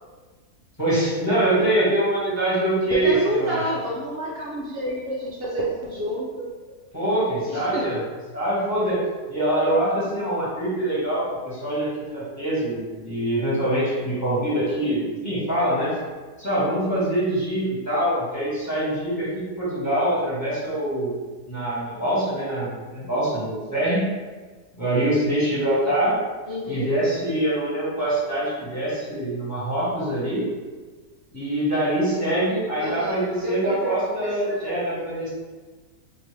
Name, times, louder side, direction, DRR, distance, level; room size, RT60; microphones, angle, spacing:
voice 1, 0.8-3.6 6.9-8.0 8.3-9.0 9.3-15.9 16.4-21.2 21.5-24.1 24.7-26.2 26.7-30.5 31.3-35.3, right 1 dB, 10° left, -9 dB, 1.2 m, -24 dB
voice 2, 2.9-6.8 7.5-8.0 26.5-26.9 32.8-33.9 34.2-35.3, equal, 90° right, -5 dB, 0.5 m, -29 dB
4.7 x 2.7 x 3.3 m, 1.4 s
omnidirectional pair, 1.8 m